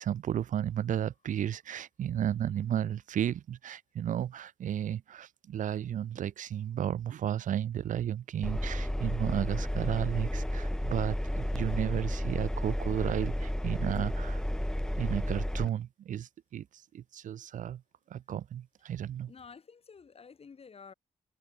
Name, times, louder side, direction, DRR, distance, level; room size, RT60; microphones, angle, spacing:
voice 1, 0.0-14.4 15.0-16.7 16.9-17.8 18.1-19.3, right 10 dB, 70° right, 1.0 m, -33 dB
Engine, 8.4-15.7, left 1 dB, 5° left, 1.9 m, -32 dB
voice 2, 19.3-20.9, left 5 dB, 45° left, 3.2 m, -51 dB
cardioid pair, 65°, 14 cm